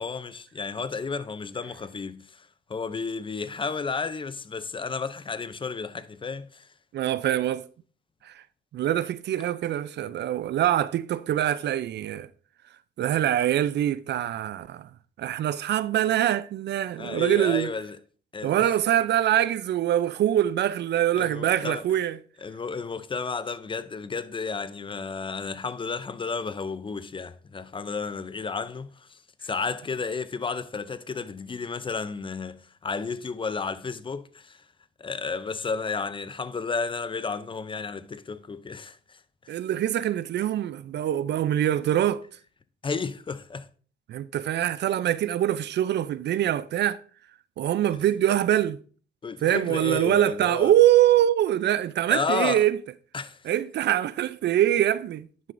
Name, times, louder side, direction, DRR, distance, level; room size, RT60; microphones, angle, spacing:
voice 1, 0.0-6.7 17.0-18.0 18.3-18.7 21.1-21.8 22.4-34.6 35.0-39.2 42.8-43.7 49.2-50.7 52.1-52.6 53.1-53.4, left 4 dB, 25° left, 0.5 m, -32 dB
voice 2, 6.9-7.6 8.2-8.4 8.7-12.3 13.0-14.9 15.2-17.7 18.4-22.2 39.5-42.2 44.1-47.0 47.6-48.8 49.4-52.8 53.4-55.5, right 12 dB, 60° right, 0.4 m, -24 dB
10.5 x 6.4 x 2.6 m
cardioid pair, 90°, 20 cm